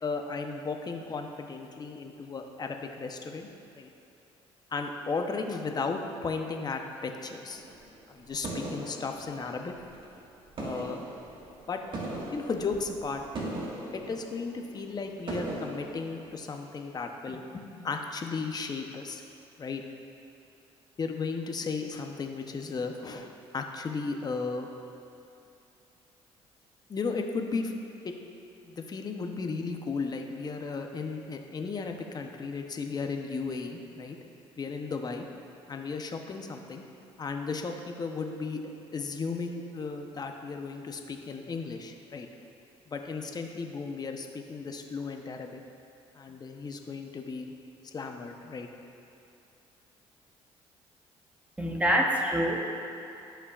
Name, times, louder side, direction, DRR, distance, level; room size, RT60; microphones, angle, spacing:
voice 1, 0.0-3.5 3.8-3.9 4.7-7.6 8.1-9.7 10.6-11.0 11.7-12.0 12.3-13.2 13.9-19.2 19.6-19.8 21.0-24.7 26.9-27.7 28.0-28.1 28.6-34.2 34.6-35.3 35.7-36.8 37.2-42.3 42.9-45.6 46.1-47.5 47.8-48.7, left 4 dB, 35° left, 4 dB, 0.8 m, -35 dB
sound 1, 7.5-10.2 10.4-16.4, right 2 dB, 45° right, 1.6 m, -39 dB
voice 2, 51.6-52.8, equal, 10° right, -1 dB, 1.0 m, -26 dB
14.5 x 5.7 x 2.4 m, 2.8 s
cardioid pair, 90°, 12 cm